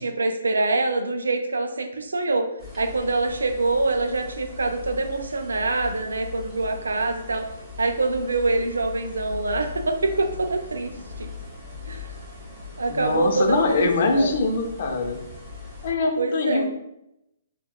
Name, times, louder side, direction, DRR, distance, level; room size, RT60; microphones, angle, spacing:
voice 1, 0.0-2.5 2.8-7.5 7.8-10.9 11.2-11.3 11.9-12.1 12.8-13.9 14.1-14.3 16.2-16.7, right 3 dB, 85° right, 6 dB, 0.4 m, -25 dB
sound 1, 2.6-15.9, left 4 dB, 10° right, 0.9 m, -40 dB
voice 2, 12.9-15.2 15.8-16.8, left 3 dB, 55° left, 4 dB, 0.5 m, -23 dB
3.5 x 2.1 x 2.2 m, 0.83 s
hypercardioid pair, 140°, 0 cm